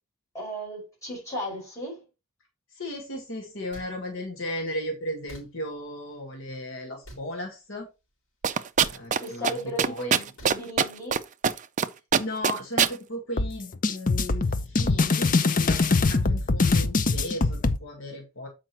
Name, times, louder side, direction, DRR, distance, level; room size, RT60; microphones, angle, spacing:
voice 1, 0.3-2.0 9.2-11.2, equal, 15° left, 5.4 m, -35 dB
voice 2, 2.7-7.9 8.9-10.1 12.2-18.5, left 1 dB, 60° left, 1.6 m, -36 dB
sound 1, 3.7-3.9 5.3-5.5 7.0-7.3 8.8-9.0 10.4-10.6, right 1 dB, 80° left, 3.5 m, -44 dB
sound 2, 8.4-9.2 9.4-9.5 9.8-11.2 11.4-11.9 12.1-12.9, right 7 dB, 35° right, 0.4 m, -21 dB
sound 3, 13.4-17.8, left 3 dB, 40° left, 0.6 m, -23 dB
7.6 x 5.0 x 4.3 m
head